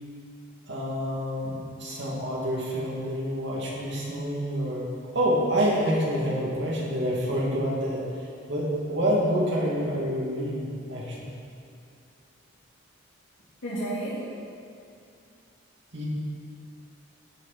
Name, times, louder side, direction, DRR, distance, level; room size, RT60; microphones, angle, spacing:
voice 1, 0.7-4.9 5.1-8.0 8.5-11.3 15.9-16.0, equal, 55° right, -5 dB, 2.6 m, -27 dB
voice 2, 13.6-14.2, right 1 dB, 80° left, -10 dB, 2.8 m, -31 dB
15.5 x 6.6 x 4.4 m, 2.4 s
head